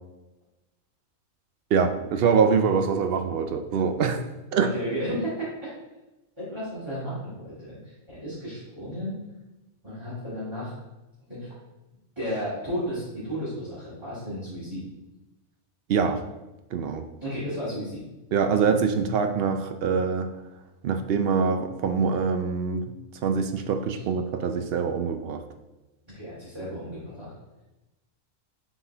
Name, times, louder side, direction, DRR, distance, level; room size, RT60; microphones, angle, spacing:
voice 1, 1.7-4.2 4.5-4.7 15.9-16.2 16.7-17.0 18.3-20.3 20.8-22.9 23.2-25.4, right 5 dB, 65° right, 7 dB, 0.6 m, -24 dB
voice 2, 4.6-5.7 6.4-9.2 9.8-10.7 11.3-11.5 12.2-14.8 17.2-18.0 23.9-24.0 26.1-27.3, equal, 20° right, -12 dB, 2.3 m, -33 dB
7.2 x 4.3 x 3.4 m, 1.0 s
omnidirectional pair, 1.4 m